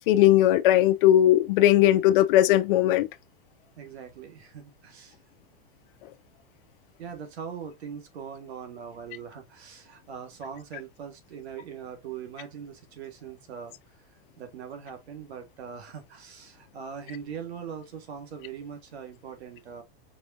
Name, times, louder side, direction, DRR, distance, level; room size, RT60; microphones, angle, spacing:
voice 1, 0.1-3.1, left 13 dB, 60° left, 0.5 m, -19 dB
voice 2, 3.8-5.2 7.0-13.8 14.4-19.8, right 7 dB, 90° right, 1.7 m, -41 dB
4.9 x 3.9 x 2.7 m
supercardioid pair, 140°, 32 cm